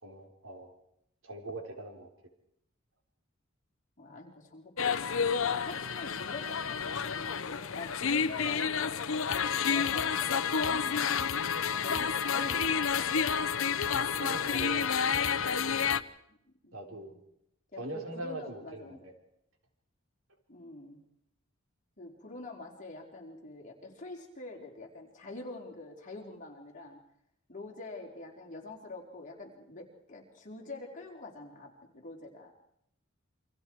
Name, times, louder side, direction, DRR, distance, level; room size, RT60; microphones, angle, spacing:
voice 1, 0.0-0.7 1.2-2.1 13.8-15.5 16.7-17.1 17.8-19.1, right 2 dB, 75° right, 4 dB, 4.0 m, -42 dB
voice 2, 4.0-5.1 5.4-11.4 11.7-13.7 14.0-14.9 16.3-16.4 16.6-17.2 17.7-19.0 20.5-21.0 22.0-27.0 27.5-32.5, left 2 dB, 35° left, -1 dB, 4.2 m, -46 dB
sound 1, 4.8-16.0, left 6 dB, 75° left, 0.8 m, -30 dB
28.5 x 24.5 x 4.7 m, 0.76 s
head